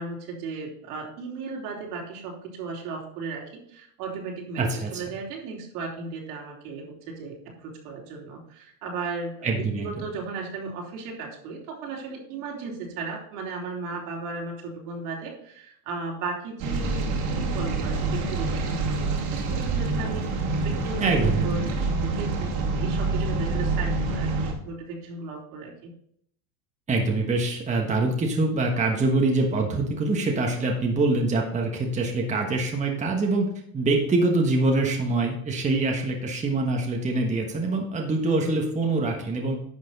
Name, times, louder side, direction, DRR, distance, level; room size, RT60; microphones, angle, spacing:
voice 1, 0.0-21.7 22.0-22.5 22.8-25.9 38.3-38.5, right 4 dB, 80° right, -1 dB, 3.2 m, -36 dB
voice 2, 4.6-5.0 9.4-9.9 21.0-21.7 26.9-33.5 33.7-39.6, right 2 dB, 15° right, 1 dB, 1.3 m, -24 dB
sound 1, 16.6-24.5, right 3 dB, 60° right, 2.4 m, -26 dB
10.5 x 6.1 x 4.1 m, 0.66 s
supercardioid pair, 130°, 45 cm